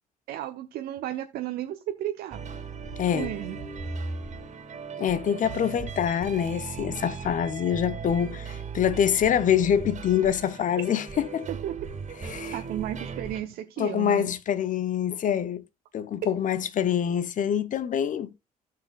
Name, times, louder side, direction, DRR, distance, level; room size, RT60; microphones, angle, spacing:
voice 1, 0.3-2.4 3.1-3.6 11.5-11.7 12.2-14.3, right 13 dB, 60° right, 0.8 m, -34 dB
sound 1, 2.3-13.4, right 5 dB, 40° right, 2.2 m, -37 dB
voice 2, 3.0-3.3 5.0-11.5 12.2-12.5 13.8-15.6 15.9-18.3, left 9 dB, 50° left, 0.9 m, -25 dB
15.5 x 6.7 x 2.4 m
figure-of-eight pair, 45°, 18 cm